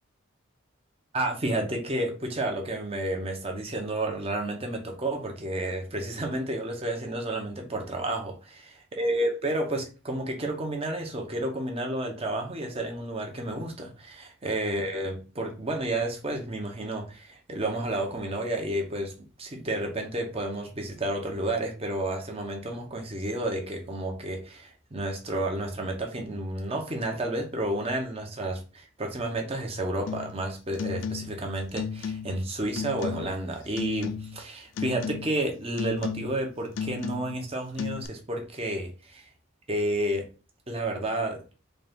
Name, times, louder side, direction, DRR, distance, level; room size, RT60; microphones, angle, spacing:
voice 1, 1.1-19.1 19.4-39.2 39.7-40.3 40.7-41.4, right 1 dB, 30° right, 0.9 m, -31 dB
sound 1, 30.1-30.4 30.7-31.4 31.7-32.4 32.8-33.4 33.8-34.5 34.8-35.4 35.8-36.4 36.7-37.4 37.8-38.1, left 6 dB, 65° left, 0.3 m, -34 dB
4.0 x 2.5 x 3.5 m
head